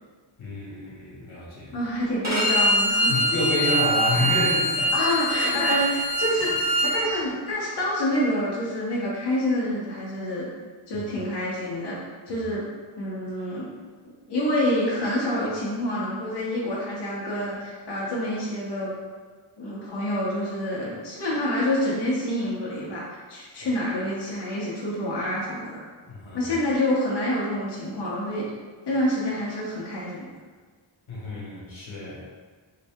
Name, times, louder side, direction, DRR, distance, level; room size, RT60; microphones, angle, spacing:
voice 1, 0.4-1.8 3.1-4.9 5.4-5.8 10.9-11.0 12.3-12.4 23.6-23.7 26.0-26.5 31.1-32.2, left 1 dB, 85° left, -5 dB, 1.3 m, -30 dB
voice 2, 1.7-3.1 4.9-10.5 10.9-12.0 12.3-12.6 13.0-13.7 14.0-18.9 19.6-25.8 26.3-28.4 28.9-30.2, left 1 dB, 60° left, -7 dB, 0.9 m, -27 dB
Bowed string instrument, 2.2-7.0, right 1 dB, 35° right, 1.4 m, -23 dB
3.8 x 2.7 x 3.5 m, 1.5 s
wide cardioid pair, 150°, 47 cm